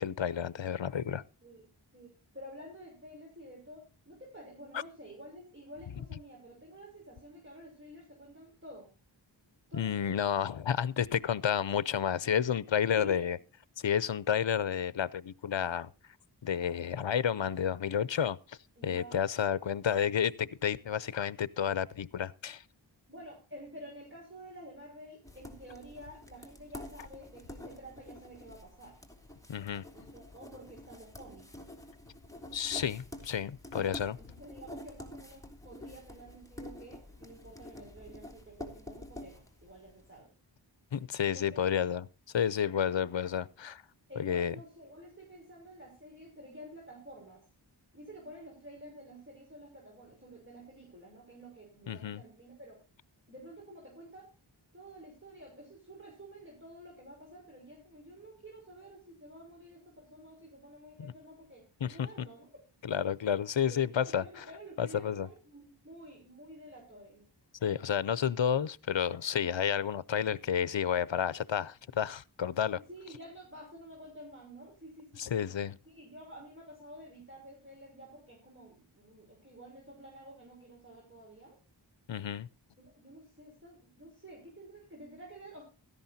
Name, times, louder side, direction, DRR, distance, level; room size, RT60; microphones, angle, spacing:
voice 1, 0.0-1.2 4.7-4.8 9.7-13.4 13.8-15.9 16.4-18.4 18.8-22.6 29.5-29.9 32.5-34.2 40.9-42.0 42.3-43.8 44.2-44.5 51.9-52.2 61.0-61.1 61.8-61.9 62.8-64.5 64.8-65.3 67.6-72.8 75.2-75.8 82.1-82.5, left 8 dB, 70° left, 0.7 m, -31 dB
voice 2, 1.9-8.9 9.7-10.3 13.0-13.3 18.8-19.3 23.1-29.0 29.9-31.5 33.7-40.3 41.3-41.7 44.1-47.4 47.9-52.8 53.3-54.3 54.7-62.5 63.7-67.2 72.7-75.5 75.9-81.6 82.8-85.6, right 1 dB, 25° right, 5.8 m, -50 dB
sound 1, 25.2-40.1, left 1 dB, 5° left, 3.0 m, -48 dB
16.5 x 13.5 x 2.7 m
wide cardioid pair, 50°, 46 cm